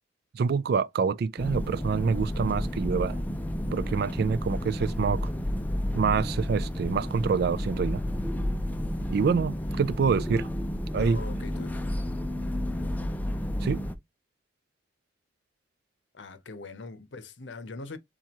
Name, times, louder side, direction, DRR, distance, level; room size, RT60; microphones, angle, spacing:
voice 1, 0.3-3.2 3.7-5.3 5.9-8.0 9.1-10.5 10.9-11.2 13.6-13.8, right 5 dB, 55° right, 0.3 m, -26 dB
sound 1, 1.4-14.0, equal, 10° left, 0.4 m, -31 dB
voice 2, 11.0-11.8 16.1-18.0, left 3 dB, 70° left, 0.8 m, -41 dB
7.2 x 2.4 x 2.9 m
head